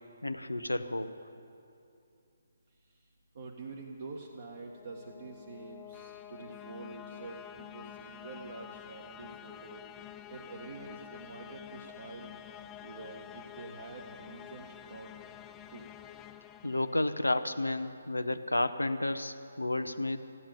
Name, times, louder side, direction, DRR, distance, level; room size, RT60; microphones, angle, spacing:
voice 1, 0.2-1.1 16.6-20.2, left 2 dB, 80° left, 9 dB, 0.7 m, -31 dB
voice 2, 3.3-9.8 10.3-12.3 12.8-15.1 15.7-15.8, right 3 dB, 45° right, -1 dB, 1.3 m, -46 dB
sound 1, 4.5-17.5, left 10 dB, 15° left, 0.4 m, -49 dB
15.0 x 8.8 x 9.1 m, 2.6 s
figure-of-eight pair, 140°, 0 cm